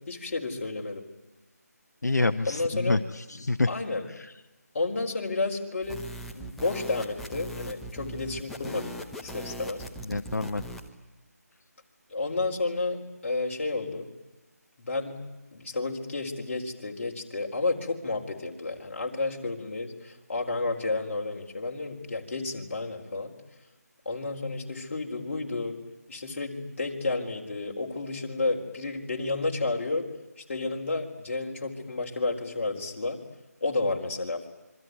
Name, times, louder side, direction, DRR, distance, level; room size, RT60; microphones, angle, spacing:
voice 1, 0.1-1.0 2.5-3.0 3.6-4.0 4.7-6.0 6.3-9.8 12.1-14.1 14.8-15.2 15.5-23.3 24.1-25.8 26.1-30.0 30.4-33.2 33.6-34.5, left 3 dB, 45° left, 1 dB, 4.1 m, -31 dB
voice 2, 2.0-3.7 4.2-4.3 10.1-10.6, left 3 dB, 80° left, 9 dB, 1.0 m, -27 dB
sound 1, 5.8-10.9, right 1 dB, ahead, 1.0 m, -40 dB
26.5 x 23.5 x 9.5 m, 1.0 s
figure-of-eight pair, 165°, 9 cm